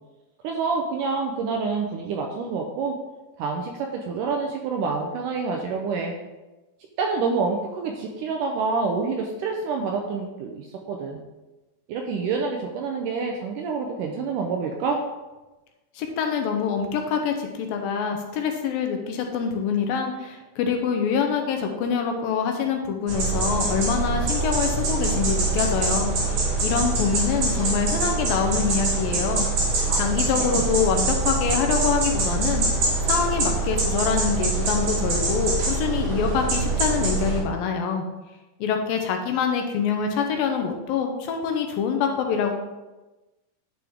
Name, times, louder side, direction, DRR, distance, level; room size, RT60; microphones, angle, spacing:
voice 1, 0.4-3.0 3.4-6.1 7.0-11.2 11.9-15.0 29.9-30.0 30.4-30.6, right 4 dB, 75° right, 2 dB, 2.0 m, -27 dB
voice 2, 16.0-29.5 30.0-32.7 33.0-38.1 38.6-42.5, left 6 dB, 75° left, 4 dB, 2.5 m, -25 dB
sound 1, 23.1-37.4, right 3 dB, 60° right, 3.0 m, -24 dB
10.5 x 5.7 x 3.6 m, 1.1 s
omnidirectional pair, 4.4 m